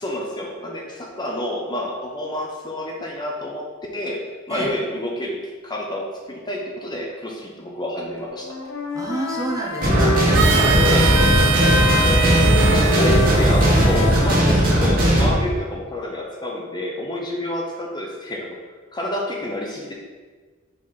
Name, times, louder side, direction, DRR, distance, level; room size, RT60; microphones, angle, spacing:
voice 1, 0.0-3.7 3.9-5.4 5.6-8.6 10.9-11.1 12.7-18.6 18.9-19.9, left 1 dB, 20° left, -1 dB, 0.8 m, -29 dB
Wind instrument woodwind instrument, 8.3-15.1, left 2 dB, 85° left, 1.1 m, -26 dB
voice 2, 8.9-11.0, right 2 dB, 15° right, -1 dB, 0.9 m, -28 dB
sound 1, 9.8-15.3, right 1 dB, 45° right, 1.6 m, -17 dB
Harmonica, 10.3-15.1, right 6 dB, 65° right, 0.6 m, -25 dB
5.3 x 4.2 x 5.2 m, 1.4 s
head